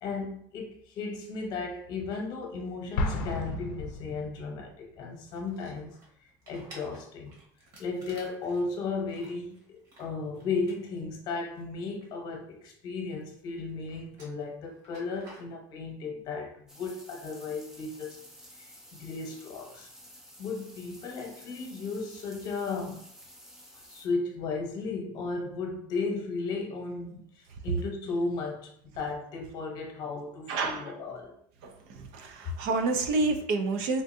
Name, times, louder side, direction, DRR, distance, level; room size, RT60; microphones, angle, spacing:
voice 1, 0.0-6.0 6.5-7.3 7.8-18.2 18.6-18.7 18.9-19.9 20.4-23.0 23.8-31.4, left 4 dB, 45° left, 0.9 m, -35 dB
Explosion, 3.0-4.7, left 2 dB, 85° left, 0.5 m, -32 dB
sound 1, 5.1-12.8 13.1-15.5, right 1 dB, 45° right, 1.3 m, -55 dB
sound 2, 16.7-24.1, equal, 5° right, 0.5 m, -52 dB
voice 2, 30.5-31.0 31.6-34.0, right 3 dB, 60° right, 0.5 m, -29 dB
3.6 x 2.4 x 2.6 m
supercardioid pair, 140°, 10 cm